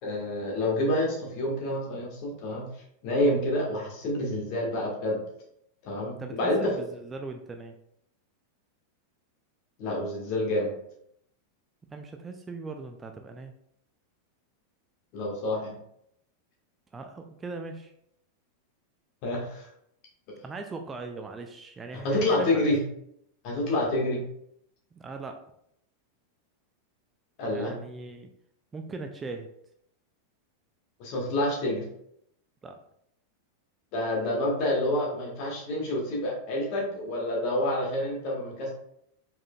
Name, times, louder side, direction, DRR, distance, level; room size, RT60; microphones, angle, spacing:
voice 1, 0.0-2.7 3.0-5.2 5.8-6.7 9.8-10.7 15.1-15.7 19.2-19.7 22.0-22.8 23.4-24.2 27.4-27.7 31.0-31.8 33.9-38.7, left 1 dB, 45° left, -2 dB, 1.6 m, -28 dB
voice 2, 6.2-7.8 11.9-13.5 16.9-17.9 20.4-22.6 24.9-25.4 27.5-28.3 28.7-29.5 32.6-32.8, right 3 dB, 15° right, 5 dB, 0.4 m, -39 dB
4.8 x 4.4 x 2.3 m, 0.73 s
figure-of-eight pair, 90°, 0 cm